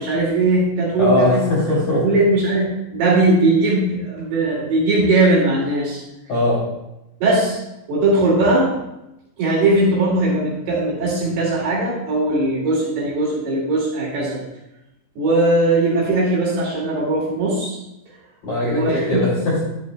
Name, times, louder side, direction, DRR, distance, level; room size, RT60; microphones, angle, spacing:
voice 1, 0.0-1.4 2.0-6.0 7.2-7.6 7.9-8.7 9.4-14.4 15.2-17.8 18.6-19.2, right 2 dB, 60° right, -5 dB, 3.8 m, -19 dB
voice 2, 1.0-2.0 6.3-6.6 18.4-19.6, left 1 dB, 40° left, -8 dB, 2.9 m, -20 dB
11.5 x 9.5 x 2.2 m, 0.91 s
omnidirectional pair, 5.8 m